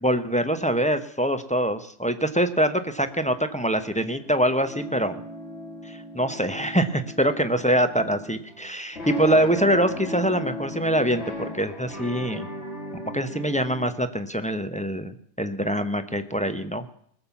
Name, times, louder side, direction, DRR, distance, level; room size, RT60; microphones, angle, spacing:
voice 1, 0.0-5.2 5.8-12.5 13.1-16.8, right 1 dB, 5° left, 8 dB, 0.8 m, -24 dB
sound 1, 3.1-13.8, left 2 dB, 75° left, 3.5 m, -37 dB
20.0 x 7.3 x 7.1 m, 0.67 s
omnidirectional pair, 1.2 m